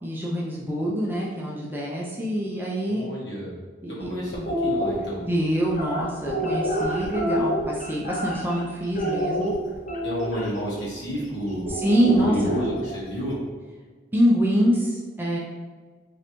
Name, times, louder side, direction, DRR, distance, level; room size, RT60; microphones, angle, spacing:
voice 1, 0.0-3.0 3.8-4.1 5.3-9.5 11.7-12.5 14.1-15.4, equal, 10° right, -4 dB, 0.4 m, -25 dB
voice 2, 2.8-3.5 3.9-5.3 10.0-11.7 12.0-13.4, equal, 60° left, -6 dB, 1.4 m, -30 dB
sound 1, 4.3-4.9 5.7-8.6 9.0-10.5 11.7-13.0, equal, 40° left, 0.6 m, -27 dB
3.8 x 3.2 x 3.0 m, 1.5 s
head